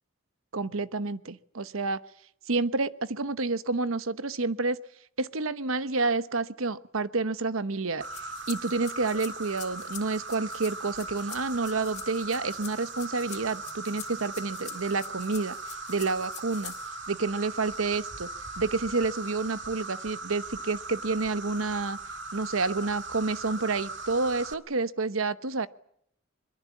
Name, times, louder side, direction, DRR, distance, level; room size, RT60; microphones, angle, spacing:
voice 1, 0.5-2.0 2.5-4.8 5.2-15.6 15.9-16.7 17.1-18.3 18.6-22.0 22.3-25.7, right 3 dB, 80° right, 14 dB, 1.1 m, -29 dB
sound 1, 8.0-17.1, left 11 dB, 35° left, 3.6 m, -46 dB
Insect, 8.0-24.5, right 3 dB, 60° right, 2.0 m, -39 dB
24.0 x 22.5 x 8.5 m, 0.72 s
head